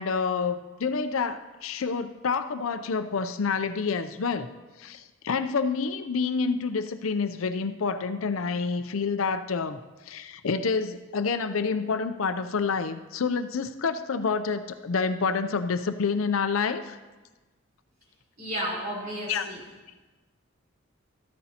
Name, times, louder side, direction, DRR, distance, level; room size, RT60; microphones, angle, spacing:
voice 1, 0.0-4.5 4.8-9.8 10.1-17.0 19.3-19.4, left 5 dB, 75° left, 10 dB, 0.6 m, -28 dB
voice 2, 18.4-19.6, equal, 45° right, -4 dB, 3.9 m, -32 dB
13.5 x 13.5 x 2.9 m, 1.2 s
head